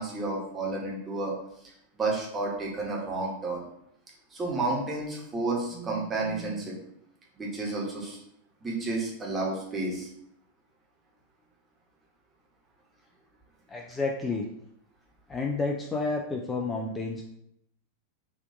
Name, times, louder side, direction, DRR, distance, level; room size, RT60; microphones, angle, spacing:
voice 1, 0.0-1.3 1.9-3.6 4.3-6.7 7.4-8.2 8.6-10.1, right 3 dB, 20° right, -3 dB, 1.1 m, -31 dB
voice 2, 13.7-14.5 15.3-17.2, left 3 dB, 15° left, 0 dB, 0.4 m, -30 dB
4.1 x 2.6 x 2.6 m, 0.77 s
figure-of-eight pair, 90°, 0 cm